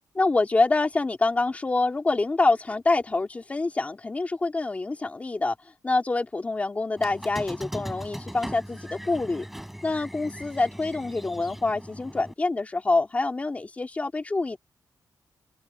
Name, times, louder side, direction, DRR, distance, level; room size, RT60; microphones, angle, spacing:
voice 1, 0.2-5.6 5.8-9.5 9.8-14.6, left 3 dB, 20° left, 2.3 m, -26 dB
Squeak, 7.0-12.3, equal, 5° right, 7.3 m, -39 dB
wide cardioid pair, 165°, 7 cm